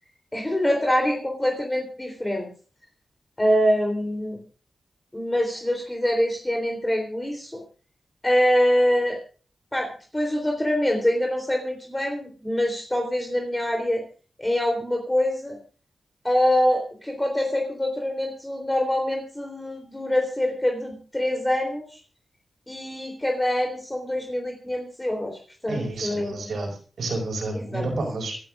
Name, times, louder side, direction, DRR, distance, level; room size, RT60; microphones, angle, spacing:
voice 1, 0.3-2.5 3.4-4.4 5.1-7.6 8.2-9.2 9.7-14.0 14.4-15.6 16.2-21.8 22.7-26.5 27.5-27.8, left 1 dB, 15° left, 1 dB, 3.5 m, -25 dB
voice 2, 25.7-28.4, right 2 dB, 85° right, 1 dB, 5.3 m, -30 dB
27.5 x 12.0 x 2.5 m, 0.38 s
cardioid pair, 65°, 0 cm